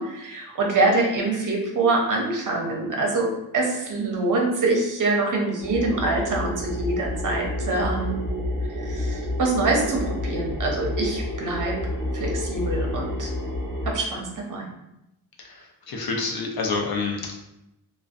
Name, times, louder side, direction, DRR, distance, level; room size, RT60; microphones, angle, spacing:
voice 1, 0.0-3.3 3.5-8.2 8.8-11.8 12.1-13.3 13.8-14.7, right 2 dB, 50° right, 0 dB, 0.6 m, -25 dB
sound 1, 5.6-13.9, left 1 dB, 25° right, 0.8 m, -29 dB
voice 2, 15.4-17.4, left 4 dB, 65° left, 1 dB, 0.5 m, -28 dB
2.4 x 2.1 x 2.4 m, 0.86 s
wide cardioid pair, 165°, 41 cm